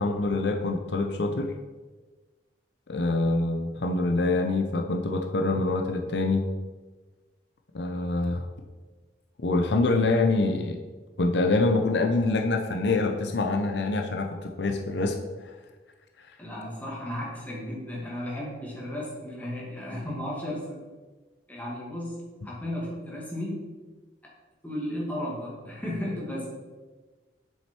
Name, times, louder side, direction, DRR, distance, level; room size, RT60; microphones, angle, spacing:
voice 1, 0.0-1.5 2.9-6.5 7.7-8.5 9.4-10.8 11.2-15.5, left 2 dB, 75° left, 3 dB, 0.7 m, -25 dB
voice 2, 16.4-20.8 21.5-22.1 22.4-23.6 24.6-26.5, left 1 dB, 10° left, -5 dB, 2.1 m, -34 dB
7.4 x 6.6 x 4.5 m, 1.3 s
head